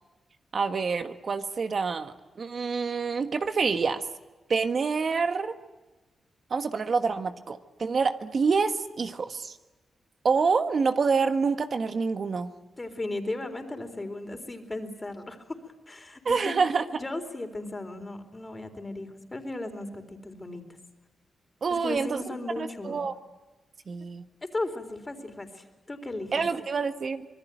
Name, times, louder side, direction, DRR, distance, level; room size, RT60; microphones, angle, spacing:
voice 1, 0.5-4.0 4.5-5.5 6.5-9.5 10.2-12.5 16.2-16.8 21.6-23.1 23.9-24.2 26.3-27.3, right 5 dB, 55° right, 8 dB, 1.4 m, -27 dB
voice 2, 12.8-15.4 15.9-16.6 17.0-20.6 21.7-23.0 24.5-26.3, left 2 dB, 25° left, 6 dB, 4.1 m, -36 dB
26.0 x 20.5 x 9.2 m, 1.1 s
cardioid pair, 60°, 0 cm